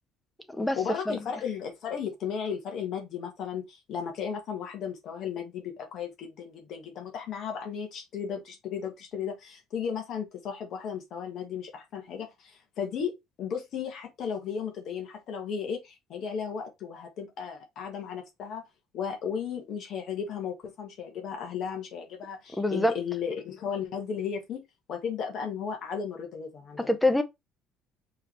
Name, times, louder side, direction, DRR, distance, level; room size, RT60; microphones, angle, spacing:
voice 1, 0.8-13.1 13.4-18.6 18.9-24.6 24.9-26.9, left 7 dB, 50° left, 1.4 m, -35 dB
voice 2, 22.6-22.9 26.8-27.2, left 1 dB, 5° left, 0.6 m, -25 dB
4.8 x 3.3 x 2.9 m
cardioid pair, 135°, 0 cm